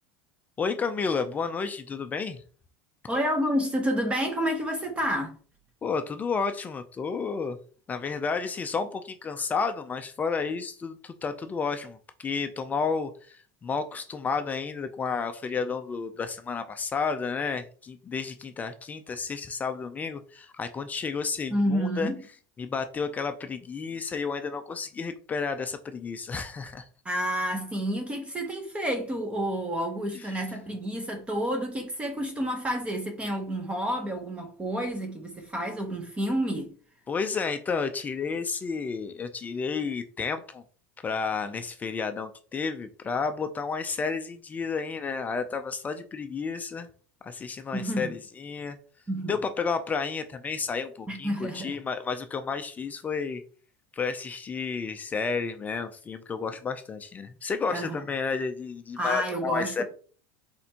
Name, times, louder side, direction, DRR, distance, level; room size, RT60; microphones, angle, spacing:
voice 1, 0.6-2.4 5.8-7.6 7.9-22.1 22.6-26.9 30.1-30.3 37.1-40.6 41.0-46.9 47.2-48.8 49.3-53.4 53.9-59.8, left 5 dB, 20° left, 0.4 m, -31 dB
voice 2, 3.1-5.3 21.5-22.2 27.0-36.7 47.7-48.1 49.1-49.3 51.1-51.8 57.7-58.0 59.0-59.8, equal, 15° right, 0.8 m, -29 dB
4.3 x 4.1 x 2.8 m
supercardioid pair, 125°, 8 cm